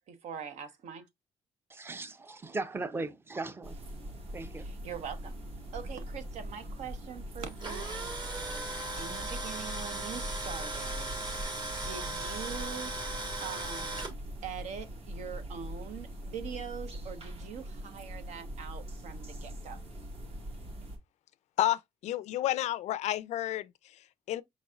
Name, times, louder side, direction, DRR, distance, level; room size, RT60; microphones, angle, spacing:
voice 1, 0.1-1.1 4.6-5.4 5.7-11.6 11.8-12.9 13.4-14.1 14.4-19.8, right 7 dB, 70° right, 0.9 m, -43 dB
voice 2, 1.7-3.8 4.3-4.6, right 3 dB, 20° right, 0.6 m, -37 dB
sound 1, 3.6-21.0, equal, 55° right, 1.7 m, -42 dB
Tools, 7.4-14.1, right 2 dB, 40° right, 1.4 m, -38 dB
voice 3, 21.6-24.4, left 13 dB, 75° left, 0.4 m, -31 dB
5.3 x 4.1 x 2.4 m
cardioid pair, 120°, 12 cm